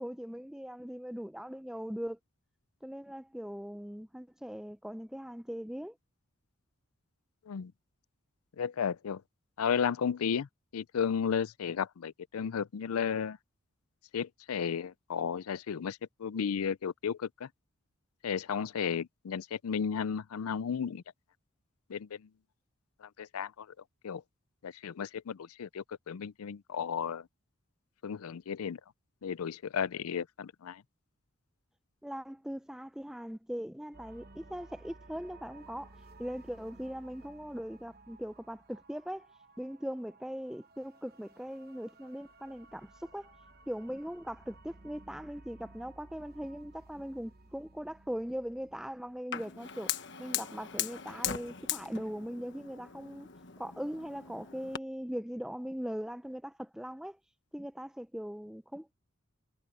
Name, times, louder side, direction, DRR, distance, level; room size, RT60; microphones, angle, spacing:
voice 1, 0.0-2.2 2.8-6.0 32.0-39.3 39.6-43.3 43.7-49.9 50.2-53.3 53.6-57.2 57.5-58.9, equal, 5° right, 0.5 m, -40 dB
voice 2, 8.6-9.2 9.6-10.5 10.7-13.4 14.1-17.5 18.2-21.0 21.9-22.2 23.0-23.7 24.0-24.2 24.6-27.3 28.0-28.8 29.2-30.8, left 7 dB, 90° left, 0.4 m, -34 dB
sound 1, 33.9-49.2, right 2 dB, 45° right, 1.1 m, -57 dB
Fire, 49.3-54.8, left 10 dB, 55° left, 1.3 m, -39 dB
head